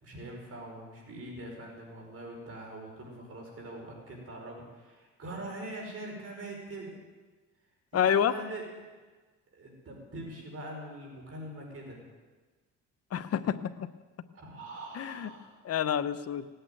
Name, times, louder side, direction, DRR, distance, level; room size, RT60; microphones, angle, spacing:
voice 1, 0.0-6.9 7.9-8.6 9.5-12.0 14.3-15.6, right 1 dB, 50° right, 0 dB, 5.0 m, -43 dB
voice 2, 7.9-8.3 13.1-13.9 14.9-15.3 15.6-16.5, left 9 dB, 55° left, 12 dB, 0.9 m, -28 dB
18.0 x 9.0 x 9.1 m, 1.3 s
cardioid pair, 90°, 30 cm